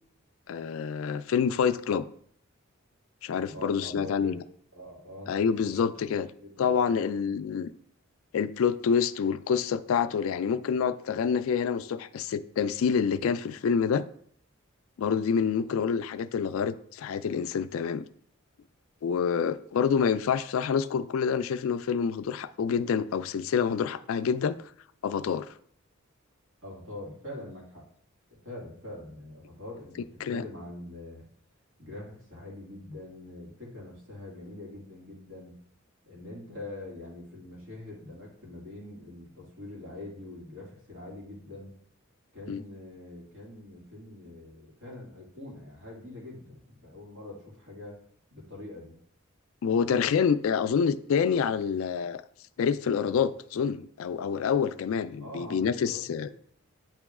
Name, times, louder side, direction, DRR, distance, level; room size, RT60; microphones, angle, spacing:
voice 1, 0.5-2.1 3.2-4.4 5.3-6.3 6.6-7.7 8.3-14.1 15.0-18.0 19.0-24.6 25.0-25.5 30.2-30.4 42.5-42.6 49.6-52.2 52.6-56.3, left 6 dB, 75° left, 0.3 m, -27 dB
voice 2, 3.4-4.4 4.7-5.9 6.3-7.6 26.6-27.8 28.3-31.2 31.8-35.6 36.0-41.7 42.3-48.0 48.3-49.0 55.2-56.3, left 1 dB, 75° right, 2.3 m, -44 dB
8.8 x 3.0 x 3.6 m
head